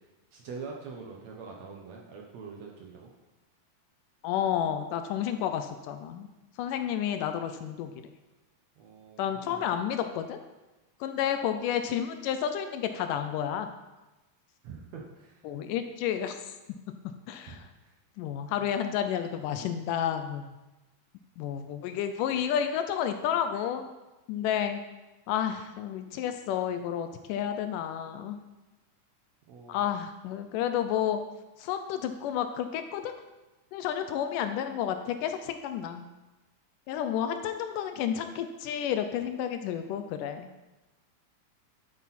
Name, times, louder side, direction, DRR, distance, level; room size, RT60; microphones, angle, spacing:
voice 1, 0.3-3.1 8.8-9.7 14.6-15.5 17.5-18.0 29.5-29.9, right 5 dB, 65° right, 0 dB, 1.9 m, -44 dB
voice 2, 4.2-6.3 6.6-7.9 9.2-10.4 11.0-13.7 15.4-16.4 17.0-17.6 18.2-20.6 21.4-23.9 24.3-24.8 25.3-28.4 29.7-31.2 31.6-33.1 33.7-36.1 36.9-40.5, left 9 dB, 80° left, 8 dB, 2.0 m, -31 dB
10.5 x 8.4 x 4.2 m, 1.1 s
omnidirectional pair, 4.0 m